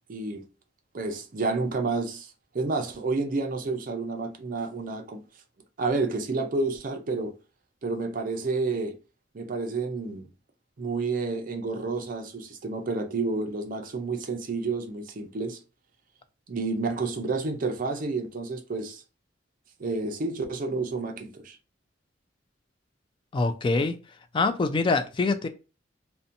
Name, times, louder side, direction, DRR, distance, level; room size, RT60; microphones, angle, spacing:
voice 1, 0.1-0.4 0.9-5.2 5.8-7.3 7.8-8.9 9.3-10.3 10.8-15.6 16.5-19.0 19.8-21.6, right 3 dB, 45° right, 0.5 m, -30 dB
voice 2, 23.3-24.0 24.3-25.5, left 3 dB, 25° left, 0.3 m, -24 dB
2.7 x 2.1 x 2.6 m
head